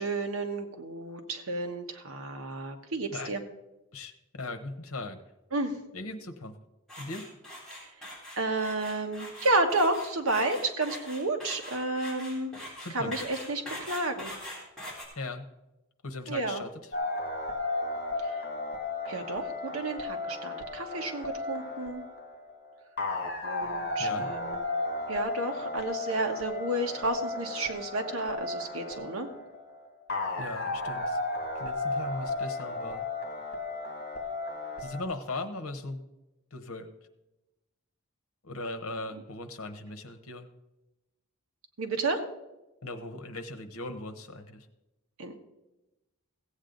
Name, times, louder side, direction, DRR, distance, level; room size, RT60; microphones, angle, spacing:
voice 1, 0.0-3.4 5.5-5.8 8.4-12.5 12.9-14.3 16.3-16.6 18.2-18.3 19.1-22.0 23.4-24.6 25.1-29.3 39.1-39.2 41.8-42.2 45.2-45.4, right 2 dB, 75° right, 4 dB, 1.4 m, -31 dB
voice 2, 3.9-5.2 5.9-6.6 7.0-7.2 12.8-13.1 15.2-15.5 16.0-16.7 24.0-24.3 30.4-31.2 31.5-33.0 34.8-36.0 36.5-36.9 38.4-40.5 42.8-44.7, left 2 dB, 75° left, 8 dB, 1.1 m, -38 dB
sound 1, 6.9-15.0, left 1 dB, ahead, 3.9 m, -42 dB
sound 2, 16.9-35.0, left 2 dB, 45° left, 2.1 m, -34 dB
16.0 x 8.4 x 3.9 m, 0.99 s
head